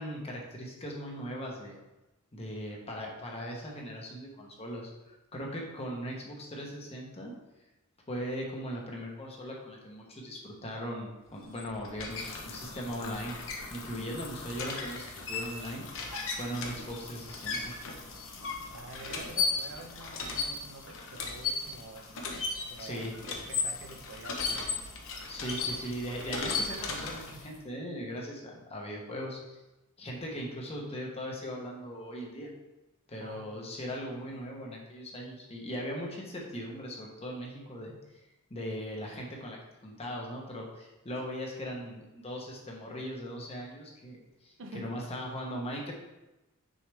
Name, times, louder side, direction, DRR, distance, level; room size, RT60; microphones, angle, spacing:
voice 1, 0.0-1.8 2.3-7.3 8.1-13.4 13.7-15.9 16.4-17.7 22.8-23.1 25.3-29.6 30.0-32.5 33.1-38.0 38.5-39.6 39.8-45.9, equal, 30° left, -1 dB, 1.1 m, -39 dB
sound 1, 11.3-27.6, left 4 dB, 60° left, 0.9 m, -36 dB
voice 2, 18.4-22.1 22.6-24.8 33.2-33.8 44.6-44.9, right 2 dB, 60° right, 4 dB, 0.8 m, -48 dB
6.3 x 4.7 x 3.4 m, 1.0 s
head